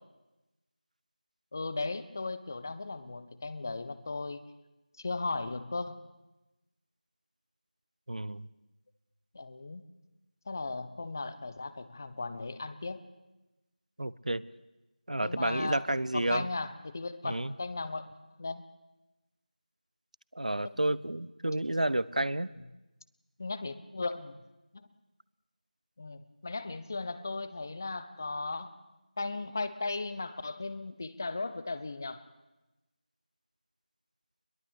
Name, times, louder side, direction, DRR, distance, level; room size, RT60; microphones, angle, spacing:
voice 1, 1.5-4.4 5.0-6.0 9.3-9.8 10.5-13.0 15.2-15.8 16.1-18.6 23.4-24.4 24.7-24.9 26.0-28.7 29.2-32.2, left 3 dB, 25° left, 14 dB, 0.9 m, -36 dB
voice 2, 8.1-8.5 14.0-14.4 15.1-16.5 17.2-17.5 20.3-22.5, right 1 dB, 60° right, 19 dB, 0.9 m, -30 dB
22.0 x 21.5 x 8.3 m, 1.0 s
figure-of-eight pair, 170°, 4 cm